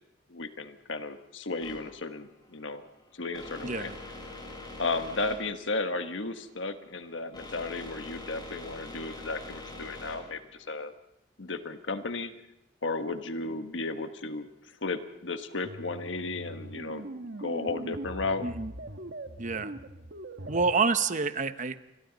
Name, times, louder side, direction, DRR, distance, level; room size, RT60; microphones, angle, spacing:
voice 1, 0.3-2.8 3.1-3.9 4.8-10.9 11.4-12.3 12.8-17.0 17.4-18.5, left 3 dB, 90° left, 8 dB, 1.4 m, -34 dB
sound 1, 1.6-10.8, left 2 dB, 25° left, 6.5 m, -44 dB
voice 2, 3.6-4.0 18.4-18.7 19.4-19.7 20.5-21.8, right 4 dB, 45° right, 11 dB, 0.9 m, -28 dB
sound 2, 15.6-21.2, right 2 dB, 65° right, 1.4 m, -41 dB
29.0 x 22.5 x 4.1 m, 0.84 s
head